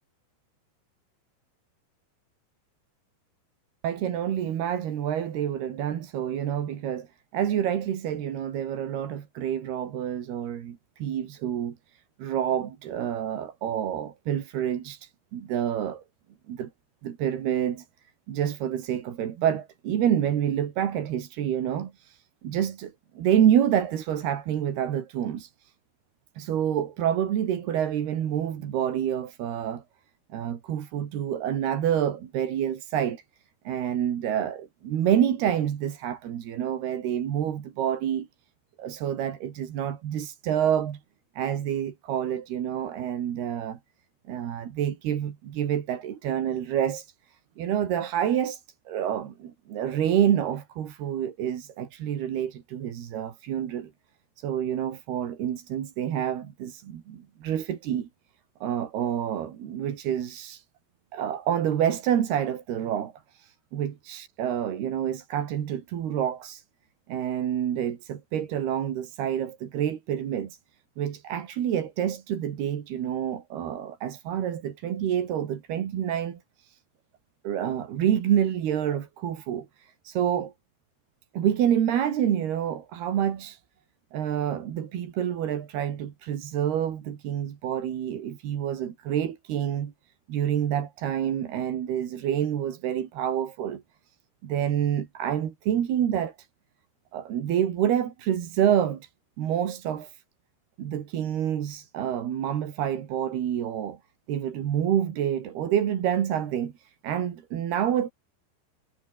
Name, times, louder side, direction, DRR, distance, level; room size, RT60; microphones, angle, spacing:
voice 1, 3.8-7.1 7.3-16.0 16.5-16.7 17.0-17.9 18.3-25.7 26.4-29.8 30.3-33.2 33.7-38.3 38.8-41.0 41.4-43.8 44.3-53.9 54.4-58.1 58.6-60.6 61.1-66.6 67.1-70.6 71.0-76.8 77.4-80.5 81.3-83.6 84.1-89.9 90.3-93.8 94.4-96.4 97.1-99.1 99.4-100.2 100.8-104.0 104.3-108.1, right 10 dB, 65° right, 4.1 m, -28 dB
omnidirectional pair, 5.1 m